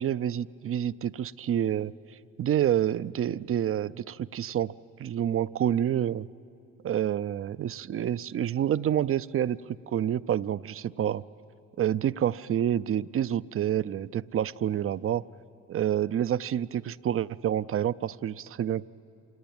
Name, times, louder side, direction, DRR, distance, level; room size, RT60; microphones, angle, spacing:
voice 1, 0.0-1.9 2.4-4.7 5.0-6.3 6.8-9.6 9.9-11.2 11.8-15.2 15.7-18.9, right 10 dB, 40° right, 17 dB, 0.5 m, -28 dB
27.0 x 18.5 x 8.8 m, 2.8 s
supercardioid pair, 65°, 35 cm